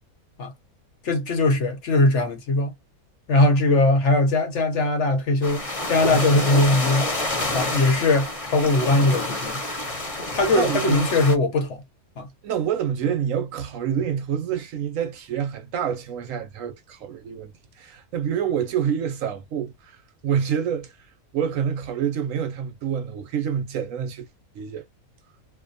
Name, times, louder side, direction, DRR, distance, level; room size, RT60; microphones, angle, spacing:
voice 1, 1.0-2.7 3.3-7.1 7.5-9.6 10.2-11.8 12.2-12.3, left 2 dB, 60° left, 1.0 m, -20 dB
sound 1, 5.4-11.3, left 1 dB, 30° left, 0.8 m, -28 dB
voice 2, 10.5-11.0 12.4-17.5 17.8-20.9 21.3-24.3 24.5-24.9, right 8 dB, 70° right, 0.9 m, -27 dB
2.5 x 2.1 x 2.5 m
omnidirectional pair, 1.5 m